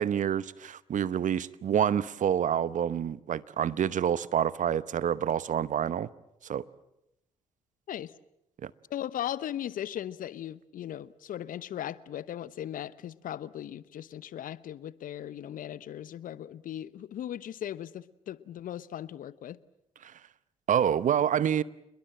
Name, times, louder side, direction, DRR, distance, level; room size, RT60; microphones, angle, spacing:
voice 1, 0.0-6.1 6.4-6.6 8.6-8.7 20.0-20.1 20.7-21.6, right 9 dB, 50° right, 0.9 m, -27 dB
voice 2, 8.9-19.6, left 11 dB, 60° left, 0.9 m, -38 dB
28.5 x 21.5 x 7.6 m
hypercardioid pair, 45°, 16 cm